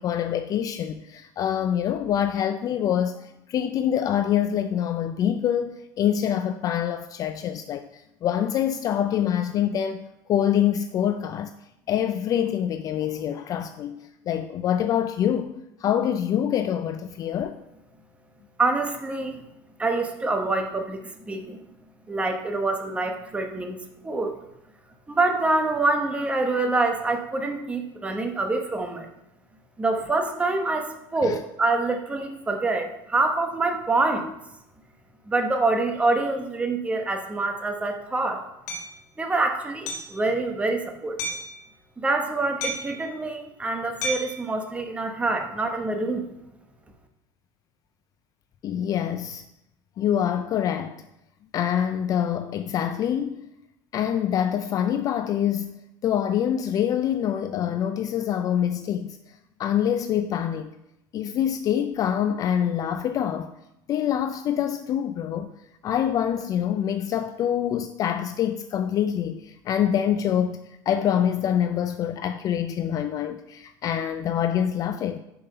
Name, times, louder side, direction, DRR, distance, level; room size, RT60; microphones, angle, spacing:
voice 1, 0.0-11.5 11.9-14.0 14.3-17.6 31.2-31.4 48.6-49.4 50.0-51.0 51.5-53.5 53.9-59.2 59.6-60.7 61.1-63.5 63.9-65.5 65.8-75.2, left 9 dB, 40° left, 0.3 m, -25 dB
voice 2, 18.6-19.4 19.8-21.6 22.1-23.8 24.0-24.3 25.1-29.1 29.8-34.3 35.3-38.4 39.2-41.2 42.0-46.3, right 3 dB, 15° right, 0.9 m, -26 dB
Hammer, 38.7-38.9 39.9-40.2 41.2-41.5 42.6-43.0 44.0-44.4, equal, 85° left, 1.6 m, -31 dB
5.7 x 5.4 x 5.3 m
supercardioid pair, 125°, 10 cm